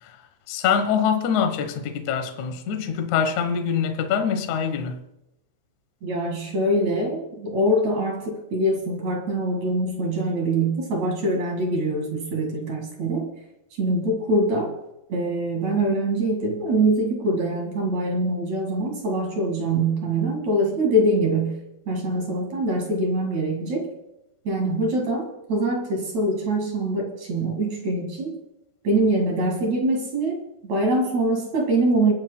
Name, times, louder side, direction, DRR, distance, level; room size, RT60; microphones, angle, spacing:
voice 1, 0.5-5.0, left 7 dB, 90° left, 1.6 m, -24 dB
voice 2, 6.0-13.3 13.8-14.7 15.1-21.6 21.9-23.9 24.4-28.4 28.8-32.1, right 1 dB, 50° right, 2.6 m, -24 dB
30.0 x 10.5 x 2.2 m
omnidirectional pair, 5.3 m